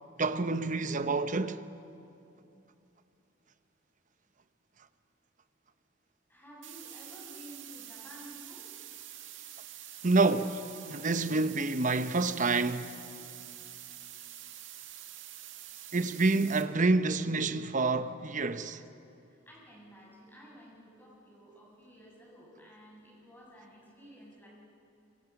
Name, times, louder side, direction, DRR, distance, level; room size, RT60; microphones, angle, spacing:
voice 1, 0.2-1.6 10.0-10.6 10.9-13.0 15.9-18.8, right 3 dB, 45° right, 0.9 m, -28 dB
voice 2, 6.3-8.6 19.5-24.5, equal, 10° left, 7.1 m, -52 dB
sound 1, 6.6-16.6, right 11 dB, 80° right, 2.0 m, -47 dB
26.0 x 25.5 x 6.0 m
head